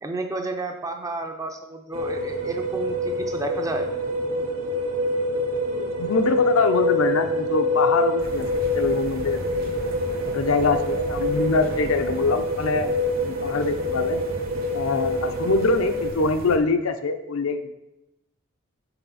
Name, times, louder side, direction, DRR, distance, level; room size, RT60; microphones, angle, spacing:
voice 1, 0.0-3.9, right 2 dB, 15° right, 5 dB, 0.5 m, -31 dB
sound 1, 1.9-16.1, left 1 dB, 85° right, 0.8 m, -26 dB
voice 2, 5.7-9.7 10.3-14.2 14.7-17.7, left 3 dB, 70° left, 8 dB, 0.6 m, -24 dB
sound 2, 8.2-16.6, right 1 dB, 45° right, 0.9 m, -37 dB
5.9 x 4.0 x 5.5 m, 0.94 s
head